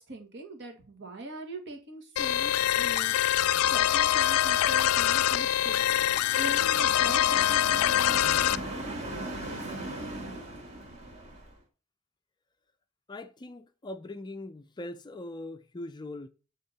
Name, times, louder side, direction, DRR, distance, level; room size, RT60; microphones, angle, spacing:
voice 1, 0.0-3.1 3.7-6.1 6.4-8.3, right 2 dB, 55° right, 1.7 m, -41 dB
sound 1, 2.2-8.6, left 12 dB, 90° left, 0.4 m, -24 dB
sound 2, 4.1-11.5, right 1 dB, 30° right, 1.8 m, -40 dB
voice 2, 13.1-16.3, left 2 dB, 20° left, 0.4 m, -41 dB
8.4 x 3.7 x 4.1 m
head